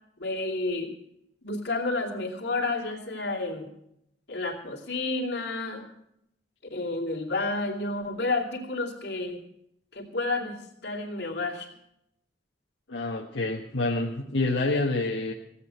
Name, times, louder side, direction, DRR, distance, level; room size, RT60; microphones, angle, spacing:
voice 1, 0.2-0.9 1.4-3.7 4.3-5.9 6.7-9.4 9.9-11.7, left 2 dB, 60° left, 0 dB, 2.9 m, -30 dB
voice 2, 12.9-15.3, left 2 dB, 85° left, -1 dB, 1.3 m, -27 dB
16.5 x 8.6 x 7.8 m, 0.78 s
head